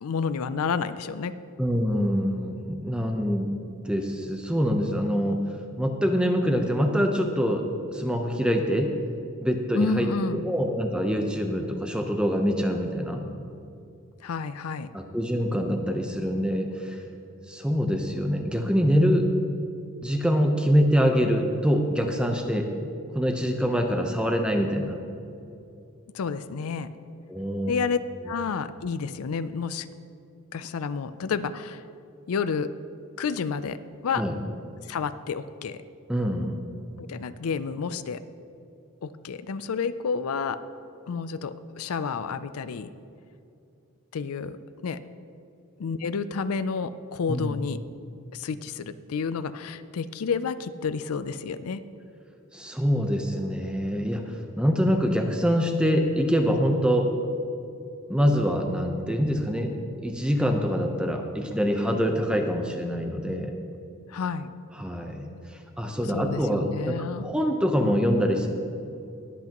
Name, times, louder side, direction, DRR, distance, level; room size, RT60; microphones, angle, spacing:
voice 1, 0.0-1.4 9.7-10.4 14.2-14.9 26.1-26.9 27.7-28.0 28.3-29.9 30.5-31.8 32.3-32.7 33.2-34.2 34.9-35.8 37.0-38.2 39.0-40.6 41.1-42.9 44.1-44.6 44.8-45.0 45.8-47.8 48.3-51.8 64.1-64.5 66.1-67.3, left 5 dB, 85° left, 13 dB, 0.4 m, -30 dB
voice 2, 1.6-3.5 3.8-5.4 5.8-7.6 7.9-8.9 9.4-10.1 10.4-13.2 14.9-17.0 17.5-19.2 20.0-22.7 23.1-25.0 27.3-27.7 34.2-34.3 36.1-36.6 47.3-47.6 52.5-57.1 58.1-63.5 64.8-67.0 67.2-68.5, equal, 5° right, 3 dB, 0.7 m, -25 dB
21.0 x 8.3 x 3.0 m, 2.6 s
head